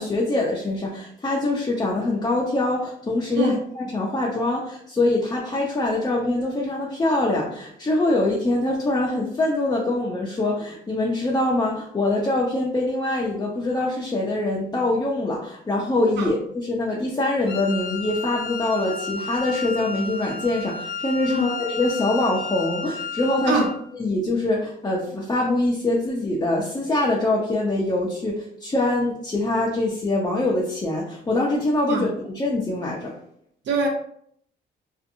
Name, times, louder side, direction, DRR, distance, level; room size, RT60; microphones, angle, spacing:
voice 1, 0.0-23.6 23.9-33.1, left 2 dB, 20° left, -4 dB, 0.6 m, -24 dB
voice 2, 3.4-3.5 16.2-16.3 21.3-21.5 23.5-23.6 31.9-32.0 33.7-33.9, right 3 dB, 65° right, 0 dB, 0.8 m, -23 dB
Wind instrument woodwind instrument, 17.5-23.8, left 4 dB, 60° left, 0.7 m, -32 dB
2.7 x 2.5 x 2.5 m, 0.66 s
cardioid pair, 90°, 20 cm